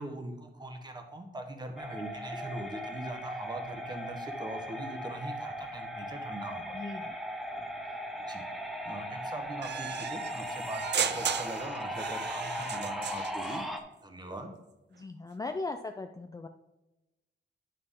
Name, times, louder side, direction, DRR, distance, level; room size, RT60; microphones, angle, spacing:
voice 1, 0.0-6.8 8.3-8.4 8.8-13.6 14.0-14.5, right 1 dB, 20° right, 4 dB, 1.2 m, -41 dB
sound 1, 1.8-13.8, equal, ahead, 0.7 m, -38 dB
voice 2, 6.7-7.1 14.9-16.5, left 3 dB, 20° left, 6 dB, 0.4 m, -38 dB
sound 2, 9.6-13.6, right 8 dB, 65° right, 0.5 m, -35 dB
9.7 x 6.3 x 3.7 m, 1.0 s
wide cardioid pair, 160°, 19 cm